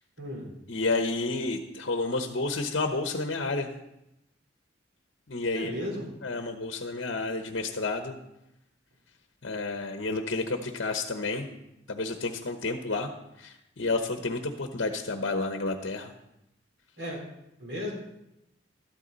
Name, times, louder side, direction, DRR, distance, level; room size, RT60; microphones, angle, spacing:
voice 1, 0.2-0.5 5.5-6.1 17.0-17.2 17.6-17.9, left 1 dB, 65° right, -2 dB, 3.9 m, -34 dB
voice 2, 0.7-3.7 5.3-5.7 6.2-8.2 9.4-11.5 11.9-13.1 13.4-16.1, left 3 dB, 65° left, 5 dB, 1.0 m, -30 dB
13.0 x 12.0 x 4.1 m, 0.87 s
head